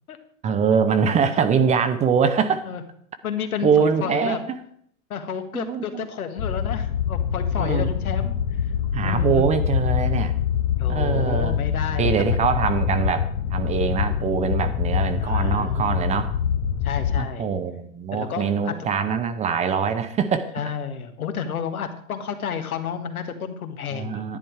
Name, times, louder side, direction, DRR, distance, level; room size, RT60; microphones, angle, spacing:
voice 1, 0.4-2.6 3.6-4.6 5.5-6.1 7.6-7.9 8.9-10.4 10.9-11.6 12.0-16.3 17.2-20.5 23.9-24.4, right 6 dB, 15° right, 11 dB, 0.6 m, -23 dB
voice 2, 3.2-4.4 5.1-8.3 9.0-9.4 10.8-12.5 15.2-16.0 16.8-17.5 18.1-18.9 20.5-24.4, left 7 dB, 80° left, 7 dB, 1.7 m, -31 dB
sound 1, 6.4-17.2, left 8 dB, 55° left, 0.9 m, -25 dB
10.5 x 10.5 x 4.6 m, 0.65 s
hypercardioid pair, 110°, 43 cm